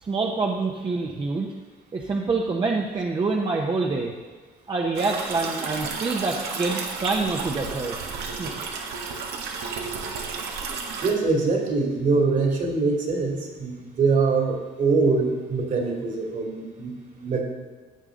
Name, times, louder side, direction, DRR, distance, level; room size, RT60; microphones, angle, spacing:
voice 1, 0.0-1.5 1.9-4.1 4.7-8.0 8.4-8.5, right 3 dB, 30° right, 0 dB, 1.0 m, -26 dB
sound 1, 4.9-11.1, right 5 dB, 75° right, 1.5 m, -32 dB
voice 2, 11.0-17.4, right 4 dB, 50° right, 1 dB, 2.6 m, -23 dB
14.5 x 8.2 x 3.8 m, 1.4 s
cardioid pair, 110°, 17 cm